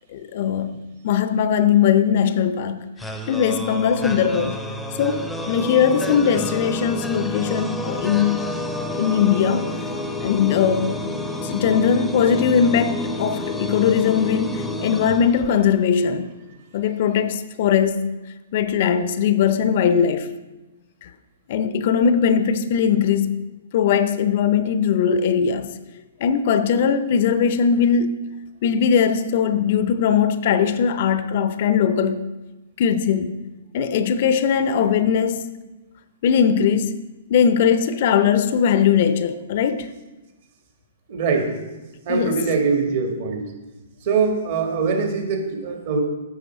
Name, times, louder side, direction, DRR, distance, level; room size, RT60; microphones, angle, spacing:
voice 1, 0.1-0.7 1.0-2.8 3.3-4.6 5.0-8.6 9.0-9.7 10.2-11.0 11.4-16.3 16.7-18.2 18.5-20.3 21.0-21.1 21.5-23.5 23.7-25.7 26.2-28.1 28.6-32.2 32.8-33.4 33.7-35.5 36.2-37.0 37.3-39.9 42.1-42.4, left 7 dB, 50° left, 0.5 m, -20 dB
sound 1, 3.0-15.9, left 1 dB, 5° left, 0.6 m, -29 dB
voice 2, 41.1-41.6 42.0-43.5 44.0-46.0, right 5 dB, 50° right, 1.5 m, -22 dB
8.2 x 5.6 x 4.3 m
figure-of-eight pair, 115°, 0 cm